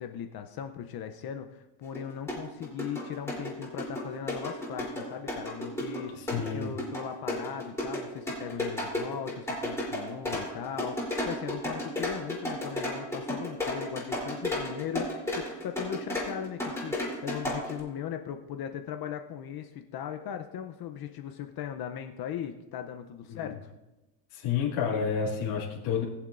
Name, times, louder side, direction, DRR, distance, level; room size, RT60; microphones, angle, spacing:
voice 1, 0.0-23.7, left 9 dB, 45° left, 6 dB, 0.7 m, -38 dB
sound 1, 1.9-2.0 2.3-17.8, left 1 dB, 5° left, 3.4 m, -33 dB
voice 2, 6.2-6.7 23.3-23.5 24.3-26.0, left 7 dB, 85° left, -4 dB, 2.5 m, -30 dB
21.0 x 7.3 x 2.6 m, 1.0 s
cardioid pair, 135°, 50 cm